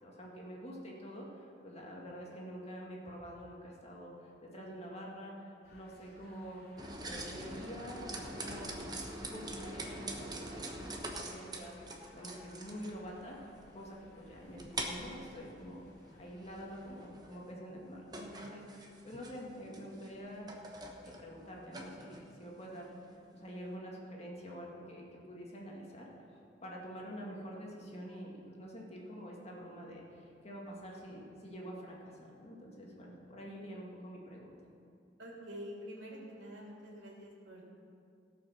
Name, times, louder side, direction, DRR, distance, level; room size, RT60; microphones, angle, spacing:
voice 1, 0.0-6.6 7.0-8.7 9.2-13.4 13.7-15.9 16.2-20.5 21.0-22.9 23.3-26.1 26.6-34.5, equal, 35° left, -3 dB, 2.0 m, -47 dB
sound 1, 5.6-17.1, left 1 dB, 55° left, 2.8 m, -61 dB
sound 2, 6.8-23.7, right 1 dB, 25° right, 1.1 m, -45 dB
voice 2, 35.2-37.7, equal, 90° right, -3 dB, 2.9 m, -47 dB
17.5 x 6.0 x 6.2 m, 2.5 s
head